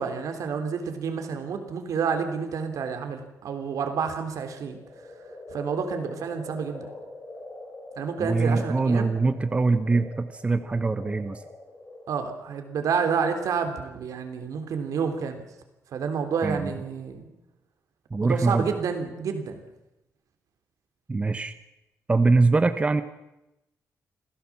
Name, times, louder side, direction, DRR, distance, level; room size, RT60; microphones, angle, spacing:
voice 1, 0.0-4.8 5.5-6.9 8.0-9.1 12.1-15.4 15.9-17.3 18.2-19.6, right 6 dB, 75° right, 6 dB, 3.3 m, -29 dB
sound 1, 4.6-13.2, left 1 dB, 30° left, 7.9 m, -43 dB
voice 2, 8.2-11.4 16.4-16.7 18.1-18.7 21.1-21.5 22.1-23.0, right 3 dB, 20° right, 10 dB, 1.0 m, -23 dB
27.0 x 16.0 x 7.4 m, 0.92 s
wide cardioid pair, 135°, 6 cm